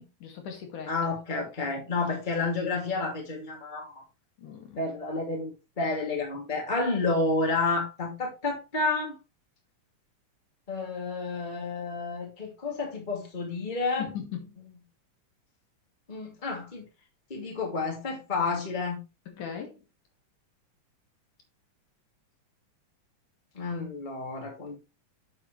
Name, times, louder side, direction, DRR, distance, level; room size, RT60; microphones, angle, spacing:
voice 1, 0.0-0.9 4.4-4.8 14.0-14.7 19.3-19.8, left 8 dB, 85° left, 3.8 m, -39 dB
voice 2, 0.9-4.0 4.8-9.2 10.7-14.1 16.1-16.8 17.3-19.0 23.5-24.8, left 3 dB, 15° left, 2.6 m, -30 dB
8.7 x 7.7 x 3.3 m
omnidirectional pair, 3.5 m